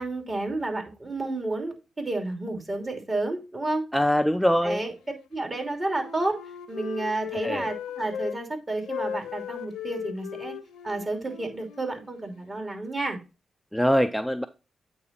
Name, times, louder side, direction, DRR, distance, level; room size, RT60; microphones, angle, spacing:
voice 1, 0.0-3.8 4.6-4.9 5.3-6.4 6.7-10.5 10.8-13.2, right 2 dB, 35° right, 3 dB, 2.9 m, -31 dB
voice 2, 3.9-4.8 7.4-7.7 13.7-14.5, equal, ahead, 9 dB, 0.5 m, -23 dB
Wind instrument woodwind instrument, 5.4-8.4 8.8-12.7, left 8 dB, 85° left, 0.8 m, -38 dB
8.5 x 3.9 x 4.2 m, 0.29 s
supercardioid pair, 50°, 0 cm